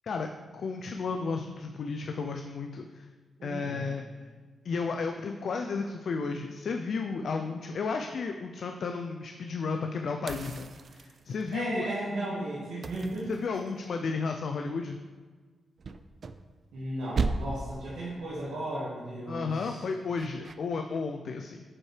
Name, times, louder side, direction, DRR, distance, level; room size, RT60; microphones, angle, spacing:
voice 1, 0.5-3.1 3.4-4.3 4.6-11.9 13.3-15.0 19.3-21.6, left 4 dB, 70° left, 4 dB, 0.4 m, -33 dB
voice 2, 3.4-3.8 11.5-13.3 16.7-19.8, right 1 dB, 80° right, -8 dB, 1.7 m, -35 dB
sound 1, 10.3-11.6 12.8-14.0 15.8-16.8 17.1-17.8 20.2-20.6, right 4 dB, 60° right, 0.3 m, -35 dB
7.3 x 4.5 x 3.2 m, 1.4 s
supercardioid pair, 45°, 0 cm